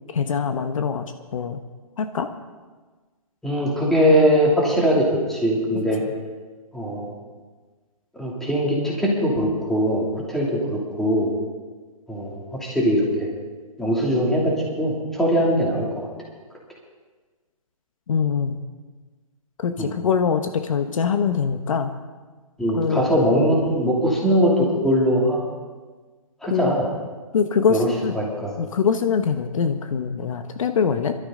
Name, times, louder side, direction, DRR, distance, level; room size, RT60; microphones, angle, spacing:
voice 1, 0.1-1.0 1.3-1.6 2.0-2.3 18.1-18.6 19.6-21.9 22.7-23.1 26.5-26.7 27.3-28.2 28.6-31.2, left 6 dB, 60° left, 7 dB, 1.1 m, -23 dB
voice 2, 3.4-6.0 6.7-7.1 8.1-11.3 12.1-13.3 13.8-14.5 14.8-16.1 19.8-19.9 22.6-25.4 26.4-26.8 27.7-27.9 28.1-28.6, equal, ahead, -4 dB, 2.8 m, -21 dB
21.5 x 13.0 x 3.8 m, 1.3 s
hypercardioid pair, 155°, 19 cm